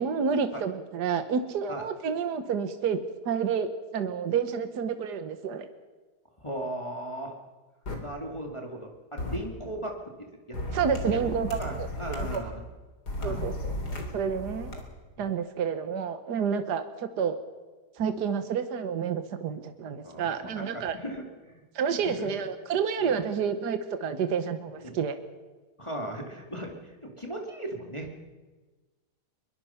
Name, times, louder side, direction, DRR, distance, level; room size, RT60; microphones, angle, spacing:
voice 1, 0.0-5.7 10.7-12.4 13.2-13.7 14.1-14.8 15.2-17.4 17.9-20.9 21.7-25.1, right 6 dB, 75° right, 9 dB, 1.7 m, -29 dB
voice 2, 6.4-7.4 8.0-10.6 11.1-11.2 11.6-12.6 13.2-13.5 15.2-15.3 20.0-21.6 21.9-22.3 23.0-23.2 24.2-24.3 24.7-25.0 25.8-28.1, right 1 dB, 15° left, 1 dB, 2.4 m, -37 dB
sound 1, 7.9-8.0 9.2-9.4 10.5-12.4 13.1-14.8, left 1 dB, 70° left, 4.1 m, -34 dB
23.0 x 22.5 x 5.8 m, 1.3 s
omnidirectional pair, 1.8 m